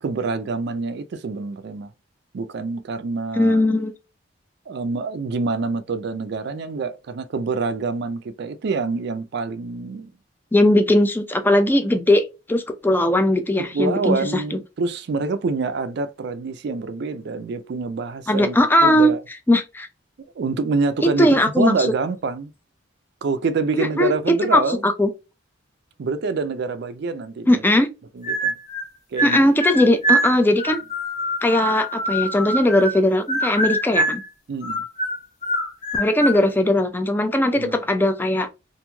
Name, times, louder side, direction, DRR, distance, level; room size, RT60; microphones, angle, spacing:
voice 1, 0.0-1.9 2.3-3.6 4.7-10.1 13.6-19.2 20.4-22.5 23.2-24.8 26.0-27.6 28.1-28.6 29.1-29.5 34.5-34.8 37.5-37.8, right 4 dB, 60° right, 0.4 m, -26 dB
voice 2, 3.4-3.9 10.5-12.2 12.5-14.6 18.3-19.1 19.5-19.9 21.0-21.7 23.8-25.1 27.5-27.9 29.2-30.8 31.4-34.2 35.9-38.5, left 1 dB, 10° left, 0.4 m, -19 dB
sound 1, 28.2-28.9 29.2-33.0 33.3-34.3 34.6-36.4, right 1 dB, 35° left, 0.9 m, -24 dB
3.0 x 2.5 x 2.2 m
head